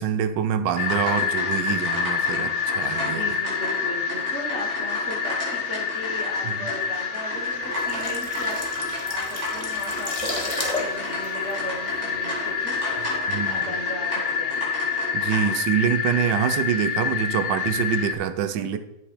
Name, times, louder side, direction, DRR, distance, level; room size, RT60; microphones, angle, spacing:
voice 1, 0.0-3.3 6.4-6.5 13.3-13.6 15.1-18.8, right 9 dB, 80° right, 10 dB, 1.4 m, -25 dB
sound 1, 0.8-18.1, left 6 dB, 70° left, 1.5 m, -28 dB
sound 2, 0.8-15.5, equal, 65° right, 4.3 m, -34 dB
voice 2, 3.0-8.6 9.0-12.8 13.1-14.7 17.9-18.2 18.5-18.7, equal, 40° right, -1 dB, 1.5 m, -37 dB
sound 3, 7.6-12.4 12.7-13.0, left 2 dB, 20° left, 1.5 m, -34 dB
8.6 x 7.8 x 5.0 m, 0.91 s
omnidirectional pair, 1.9 m